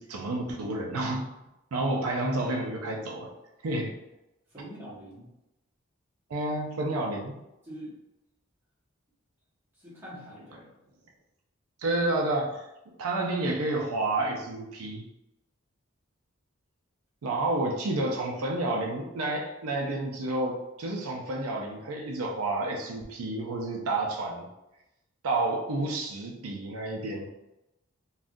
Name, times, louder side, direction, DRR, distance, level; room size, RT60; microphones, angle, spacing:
voice 1, 0.0-1.3 1.7-3.3 3.6-4.0 6.3-7.3 11.8-12.6 13.0-15.0 17.2-24.5 25.2-27.3, right 2 dB, 85° right, 0 dB, 0.5 m, -30 dB
voice 2, 4.5-5.3 6.9-7.0 7.6-7.9 9.8-10.7, right 1 dB, 10° right, -10 dB, 1.2 m, -44 dB
3.5 x 2.3 x 2.5 m, 0.93 s
head